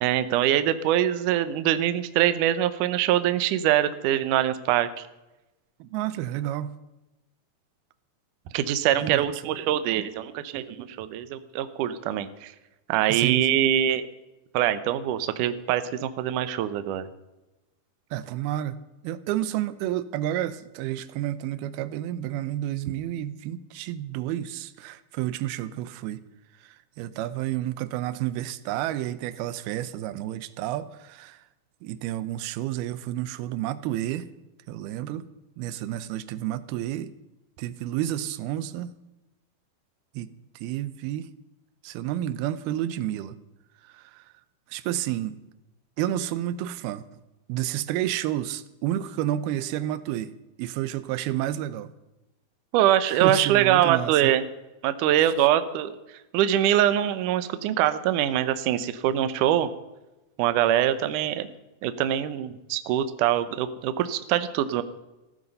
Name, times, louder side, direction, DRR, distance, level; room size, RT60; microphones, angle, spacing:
voice 1, 0.0-5.1 8.5-12.5 12.9-14.1 14.5-17.1 52.7-54.4 54.8-55.9 56.3-59.7 60.4-61.5 61.8-64.8, right 11 dB, 75° right, 12 dB, 2.1 m, -23 dB
voice 2, 5.8-6.8 9.0-9.3 13.1-13.6 18.1-18.8 19.0-26.2 26.6-31.4 31.8-34.3 34.7-35.3 35.6-37.1 37.6-38.9 40.1-40.3 40.6-41.3 41.8-43.4 43.8-44.3 44.7-45.4 46.0-47.0 47.5-51.9 53.1-54.3, right 12 dB, 90° right, 15 dB, 2.6 m, -30 dB
15.0 x 13.5 x 5.5 m, 1.0 s
omnidirectional pair, 4.3 m